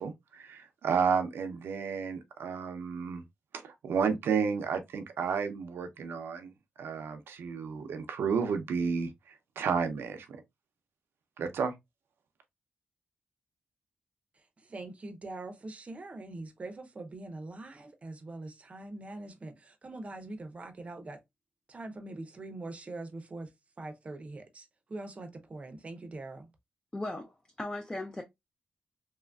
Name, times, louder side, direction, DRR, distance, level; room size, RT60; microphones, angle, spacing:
voice 1, 0.0-3.2 3.5-6.5 6.8-10.4 11.4-11.7, right 6 dB, 90° right, 0.5 m, -32 dB
voice 2, 14.4-21.2 21.7-23.5 23.8-26.5, right 2 dB, 35° right, 0.6 m, -43 dB
voice 3, 26.9-28.2, left 2 dB, 15° left, 0.4 m, -37 dB
3.0 x 2.4 x 2.2 m
wide cardioid pair, 110°, 4 cm